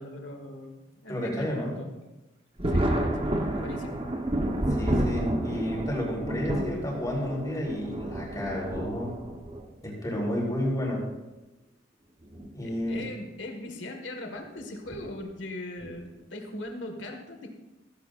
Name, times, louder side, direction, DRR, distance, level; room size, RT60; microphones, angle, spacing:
voice 1, 0.0-1.9 2.7-3.3 3.6-4.0 12.6-17.5, left 1 dB, 70° left, 3 dB, 1.8 m, -39 dB
voice 2, 1.1-1.8 4.7-9.1 9.8-11.0 12.5-13.1, equal, 20° left, -4 dB, 4.0 m, -31 dB
Thunder, 2.6-9.6 10.7-10.8 12.2-12.5 12.8-12.9 14.9-15.1 15.8-16.2, right 1 dB, 30° right, 1.1 m, -30 dB
15.5 x 15.5 x 2.6 m, 1.1 s
head